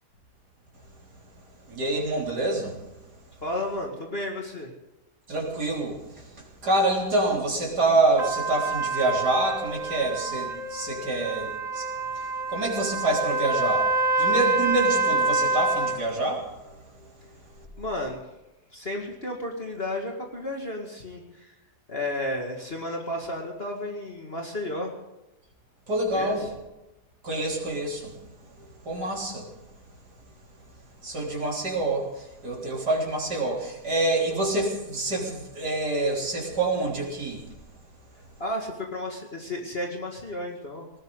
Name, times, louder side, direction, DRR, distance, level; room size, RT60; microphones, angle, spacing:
voice 1, 1.7-2.8 5.3-17.1 25.9-26.5 27.2-29.5 31.0-37.5, right 2 dB, 85° right, -1 dB, 4.3 m, -27 dB
voice 2, 3.4-4.7 17.8-18.2 18.7-21.6 21.9-25.0 26.1-26.5 38.4-40.9, left 1 dB, 40° left, 1 dB, 2.3 m, -32 dB
Trumpet, 8.2-16.0, right 3 dB, 25° right, 1.9 m, -27 dB
19.0 x 18.5 x 3.9 m, 0.99 s
omnidirectional pair, 1.7 m